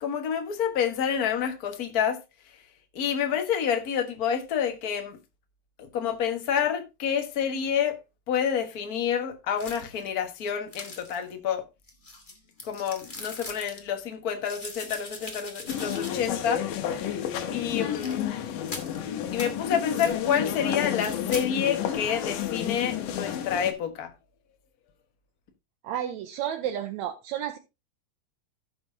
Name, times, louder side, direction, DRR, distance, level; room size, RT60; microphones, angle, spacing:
voice 1, 0.0-2.2 2.9-5.2 5.8-8.0 8.3-11.6 12.6-16.6 17.5-18.2 19.3-24.1, left 8 dB, 50° left, 1.1 m, -28 dB
sound 1, 9.6-10.1 10.7-11.3 11.9-13.8 14.4-16.5 16.8-16.9 17.9-18.2 18.7-19.0 19.4-19.5 19.9-20.2 20.8-21.5, left 2 dB, 25° left, 1.1 m, -41 dB
sound 2, 15.7-23.7, left 10 dB, 90° left, 2.7 m, -31 dB
voice 2, 25.8-27.6, right 10 dB, 75° right, 1.9 m, -31 dB
16.0 x 6.0 x 2.7 m
omnidirectional pair, 3.6 m